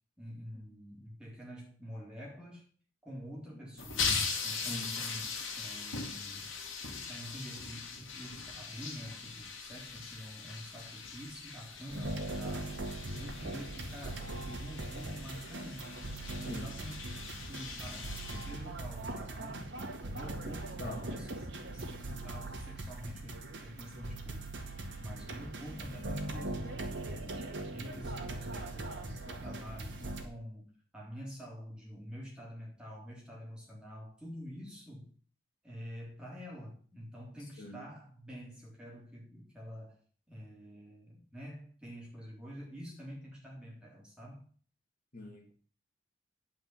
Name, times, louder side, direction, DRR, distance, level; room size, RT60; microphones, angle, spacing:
voice 1, 0.2-2.7 3.0-4.1 4.4-5.3 5.6-6.5 6.8-12.8 13.1-15.9 16.3-17.0 17.4-19.7 20.0-21.3 21.6-24.5 25.0-27.3 27.7-35.1 35.6-40.0 40.3-44.5, equal, 5° right, -4 dB, 3.5 m, -47 dB
sound 1, 3.8-19.2, left 5 dB, 75° left, 2.1 m, -40 dB
voice 2, 4.7-5.3 16.4-16.7 20.8-21.1 37.6-37.9 45.1-45.5, left 1 dB, 45° left, -1 dB, 2.6 m, -43 dB
sound 2, 11.9-30.2, right 2 dB, 60° right, 1.9 m, -41 dB
9.6 x 5.2 x 7.6 m, 0.43 s
head